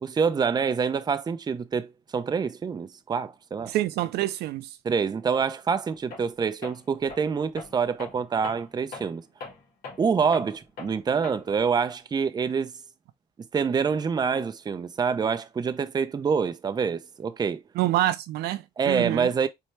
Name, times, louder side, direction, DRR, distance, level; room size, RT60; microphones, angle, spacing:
voice 1, 0.0-3.7 4.8-9.2 10.0-12.7 13.5-17.6 18.8-19.5, right 6 dB, 25° right, 0.5 m, -26 dB
voice 2, 3.7-4.8 17.8-19.3, right 14 dB, 75° right, 0.4 m, -27 dB
Tools, 6.1-6.3 6.6-11.7, left 3 dB, 60° left, 2.3 m, -42 dB
4.4 x 2.7 x 3.2 m
cardioid pair, 110°, 17 cm